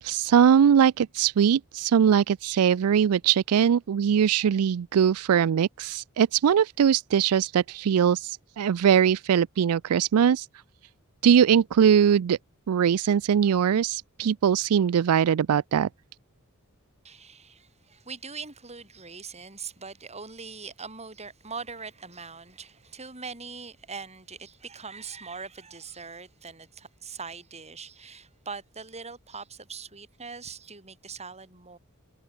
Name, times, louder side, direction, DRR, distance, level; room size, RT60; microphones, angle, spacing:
voice 1, 0.0-10.5 11.2-12.4 12.7-15.9, right 8 dB, 80° right, 0.4 m, -21 dB
voice 2, 17.0-31.8, right 5 dB, 30° right, 6.9 m, -41 dB
head